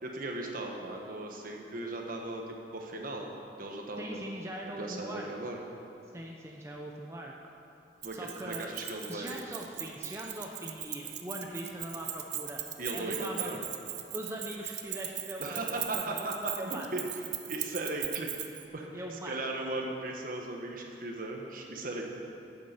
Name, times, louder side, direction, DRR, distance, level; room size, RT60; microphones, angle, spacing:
voice 1, 0.0-3.3 3.6-4.5 4.8-5.6 8.0-9.4 12.8-13.6 15.4-18.3 18.7-22.0, right 2 dB, 55° right, 1 dB, 1.4 m, -37 dB
voice 2, 4.0-5.3 6.1-7.5 8.1-8.7 9.1-12.6 12.9-13.5 14.1-16.9 18.9-19.4, right 1 dB, 15° right, -1 dB, 0.7 m, -41 dB
Keys jangling, 8.0-18.6, right 13 dB, 75° right, 0.8 m, -38 dB
9.8 x 8.6 x 6.7 m, 2.7 s
head